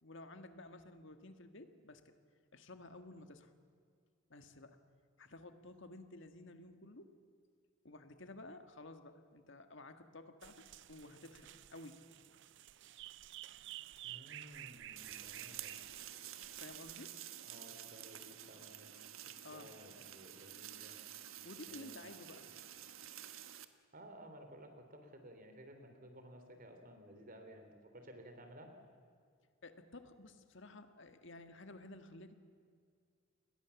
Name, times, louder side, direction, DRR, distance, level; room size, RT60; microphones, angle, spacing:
voice 1, 0.0-2.2 2.5-3.5 4.3-4.8 5.2-7.1 7.8-12.0 16.6-17.2 19.4-19.7 21.4-22.4 29.6-32.3, left 2 dB, 60° left, 8 dB, 1.8 m, -53 dB
sound 1, 10.4-17.0, right 13 dB, 60° right, 0.6 m, -52 dB
voice 2, 14.0-15.7 17.4-19.0 19.3-21.0 21.7-22.2 23.9-28.7, equal, 45° right, 6 dB, 3.6 m, -56 dB
sound 2, 15.0-23.7, right 11 dB, 75° right, 1.4 m, -50 dB
29.5 x 21.5 x 7.2 m, 2.2 s
head